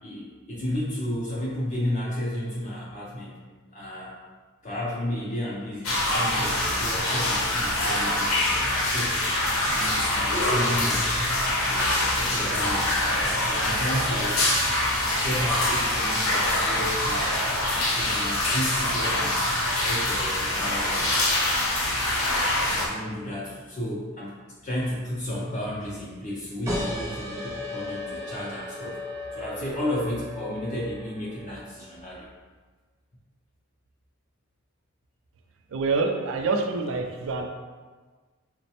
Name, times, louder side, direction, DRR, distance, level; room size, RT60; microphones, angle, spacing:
voice 1, 0.0-3.4 3.7-4.1 4.6-9.2 9.7-11.1 11.4-14.4 15.1-19.5 19.7-21.2 22.2-29.0 29.3-32.3, left 1 dB, 35° left, -6 dB, 0.5 m, -33 dB
sound 1, 5.8-22.9, left 1 dB, 80° left, 0.7 m, -24 dB
sound 2, 26.7-31.9, left 1 dB, 15° right, 0.6 m, -36 dB
voice 2, 35.7-37.5, right 3 dB, 65° right, 3 dB, 0.4 m, -26 dB
4.0 x 2.1 x 2.8 m, 1.4 s
head